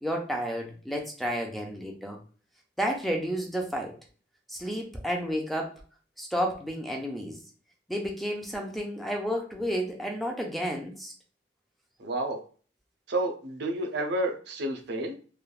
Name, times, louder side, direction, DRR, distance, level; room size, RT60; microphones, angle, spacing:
voice 1, 0.0-2.2 2.8-4.0 4.5-5.8 6.2-7.4 7.9-11.1, equal, ahead, 1 dB, 0.4 m, -31 dB
voice 2, 12.0-12.4 13.1-15.1, right 1 dB, 60° right, 3 dB, 0.5 m, -30 dB
3.2 x 2.2 x 2.3 m, 0.40 s
head